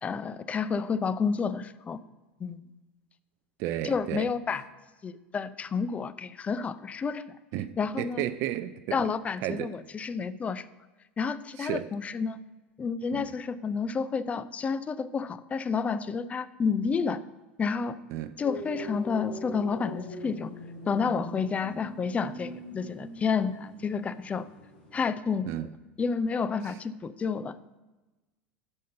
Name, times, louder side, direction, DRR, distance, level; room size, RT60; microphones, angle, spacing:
voice 1, 0.0-2.0 2.4-2.6 3.8-4.6 5.0-7.2 7.8-8.2 8.9-10.6 11.2-12.4 12.8-17.2 17.6-18.0 18.4-20.5 20.9-24.5 24.9-25.5 26.0-27.6, left 5 dB, 20° left, 14 dB, 0.4 m, -30 dB
voice 2, 3.6-4.3 7.5-7.7 8.0-9.1 9.4-9.7 11.6-11.9 13.1-13.3 18.1-18.4 25.5-25.7, right 13 dB, 50° right, 11 dB, 0.4 m, -33 dB
sound 1, 18.4-25.0, equal, 70° left, 2.4 m, -42 dB
6.4 x 5.4 x 6.4 m, 1.2 s
figure-of-eight pair, 80°, 6 cm